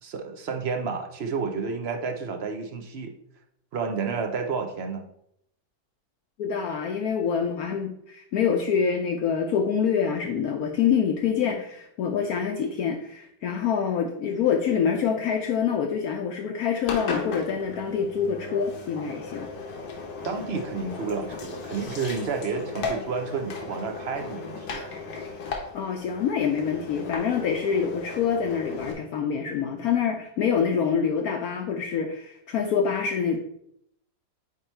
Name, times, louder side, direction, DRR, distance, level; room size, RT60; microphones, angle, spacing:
voice 1, 0.0-3.1 3.7-5.0 20.2-24.9, right 5 dB, 55° right, 4 dB, 0.7 m, -30 dB
voice 2, 6.4-19.5 25.7-33.4, left 7 dB, 70° left, 3 dB, 1.0 m, -26 dB
Engine, 16.8-28.9, left 4 dB, 90° left, 1.7 m, -36 dB
8.5 x 3.0 x 4.4 m, 0.74 s
omnidirectional pair, 1.8 m